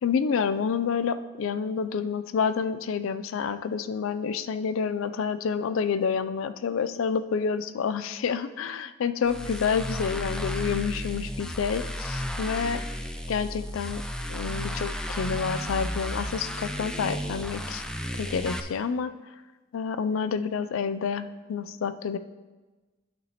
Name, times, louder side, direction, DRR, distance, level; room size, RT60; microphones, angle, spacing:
voice 1, 0.0-12.8 13.3-14.0 14.3-17.8 18.2-19.1 19.7-22.2, left 6 dB, 75° left, 12 dB, 0.4 m, -28 dB
sound 1, 9.2-18.6, equal, 5° left, 0.3 m, -33 dB
11.0 x 6.0 x 2.9 m, 1.2 s
head